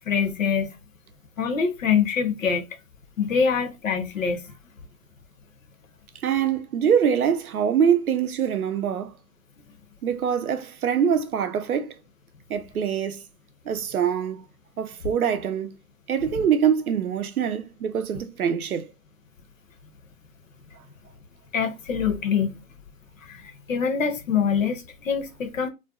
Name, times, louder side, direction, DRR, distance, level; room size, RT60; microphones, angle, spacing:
voice 1, 0.1-0.7 1.4-2.6 3.2-4.5 21.5-22.5 23.2-23.4 23.7-25.7, left 6 dB, 60° left, 0.7 m, -24 dB
voice 2, 6.2-9.1 10.0-12.0 12.5-13.2 13.7-14.4 14.8-15.8 16.1-18.9, right 8 dB, 75° right, 0.6 m, -24 dB
2.5 x 2.2 x 2.2 m
hypercardioid pair, 150°, 44 cm